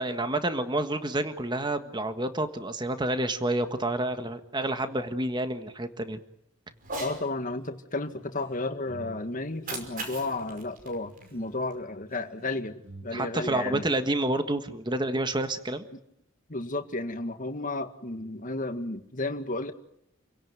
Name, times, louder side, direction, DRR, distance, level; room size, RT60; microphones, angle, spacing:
voice 1, 0.0-6.2 13.1-15.8, right 1 dB, 20° right, 9 dB, 1.5 m, -29 dB
sound 1, 6.7-13.0, right 1 dB, 75° right, 5.7 m, -51 dB
Cat, 6.8-7.2 9.4-11.8, right 2 dB, 45° right, 5.4 m, -39 dB
voice 2, 7.0-13.8 16.5-19.7, left 2 dB, 40° left, 7 dB, 1.9 m, -33 dB
29.0 x 17.0 x 9.6 m, 0.77 s
head